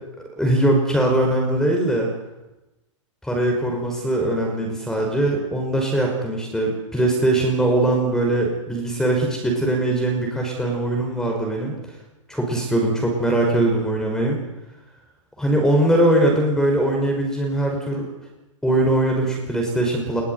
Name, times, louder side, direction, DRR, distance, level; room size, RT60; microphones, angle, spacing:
voice 1, 0.4-2.1 3.2-11.7 12.3-14.4 15.4-18.1 18.6-20.2, right 1 dB, 5° left, 0 dB, 5.4 m, -21 dB
21.5 x 17.5 x 9.6 m, 0.98 s
hypercardioid pair, 120°, 16 cm